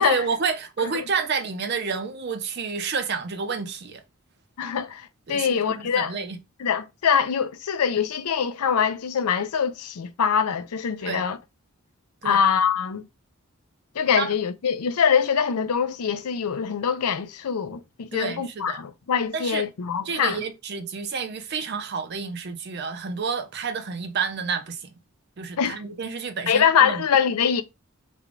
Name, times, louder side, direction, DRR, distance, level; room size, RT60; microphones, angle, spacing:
voice 1, 0.0-4.0 5.3-6.4 11.1-11.3 12.2-12.4 14.2-14.3 18.1-18.8 19.3-19.7 20.0-24.9 25.4-27.0, right 5 dB, 45° right, 0.5 m, -29 dB
voice 2, 4.6-6.1 6.6-11.4 12.2-13.1 14.0-20.4 25.6-25.8 26.5-27.6, left 7 dB, 85° left, 0.5 m, -23 dB
3.4 x 2.2 x 3.6 m
head